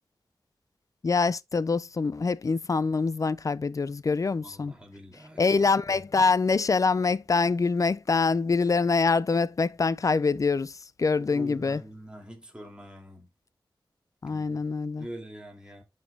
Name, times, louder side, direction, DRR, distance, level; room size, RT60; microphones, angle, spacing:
voice 1, 1.0-4.7 5.4-10.7 11.0-11.8 14.2-15.1, left 4 dB, 40° left, 0.4 m, -25 dB
voice 2, 4.4-5.6 11.2-13.3 14.2-15.8, right 1 dB, 10° right, 2.5 m, -45 dB
11.0 x 5.2 x 2.2 m
wide cardioid pair, 90°, 8 cm